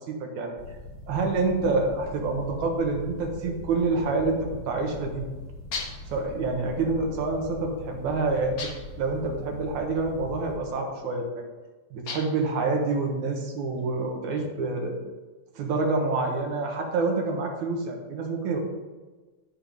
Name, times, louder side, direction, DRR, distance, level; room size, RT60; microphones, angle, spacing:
voice 1, 0.2-0.5 1.1-5.2 6.1-8.5 9.0-11.3 11.9-14.9 15.6-18.6, right 3 dB, 65° right, 1 dB, 2.5 m, -27 dB
sound 1, 0.6-10.6, left 2 dB, 30° left, 2.6 m, -42 dB
sound 2, 5.7-6.2 8.6-9.0 12.1-12.5, left 4 dB, 60° left, 1.4 m, -36 dB
11.5 x 4.5 x 5.2 m, 1.3 s
omnidirectional pair, 4.0 m